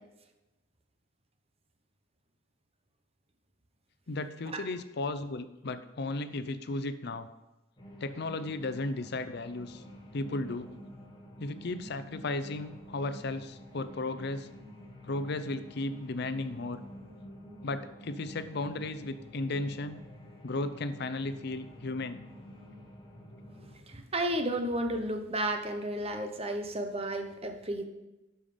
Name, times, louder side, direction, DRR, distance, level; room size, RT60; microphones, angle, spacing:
voice 1, 4.1-7.3 8.0-9.8 10.1-10.7 11.4-14.5 15.0-16.8 17.6-20.0 20.4-22.3, left 2 dB, 60° left, 11 dB, 0.6 m, -35 dB
sound 1, 7.8-23.8, equal, 25° left, 1.5 m, -49 dB
voice 2, 23.9-27.9, right 1 dB, 30° right, 6 dB, 1.0 m, -32 dB
12.5 x 5.7 x 5.1 m, 1.0 s
head